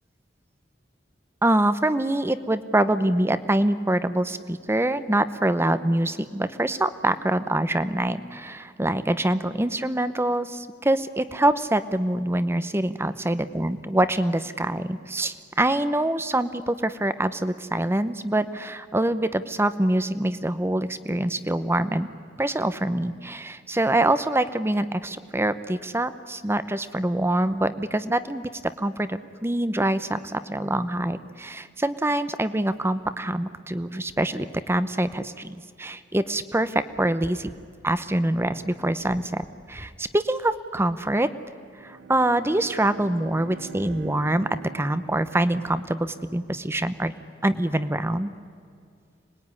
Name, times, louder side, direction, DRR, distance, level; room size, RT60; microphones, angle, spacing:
voice 1, 1.4-22.1 22.4-28.5 28.8-37.5 37.8-41.3 41.8-47.1 47.4-48.3, right 1 dB, 15° right, 12 dB, 0.8 m, -25 dB
Bowed string instrument, 41.6-46.0, right 8 dB, 85° right, 1.3 m, -44 dB
25.5 x 20.5 x 9.7 m, 2.3 s
head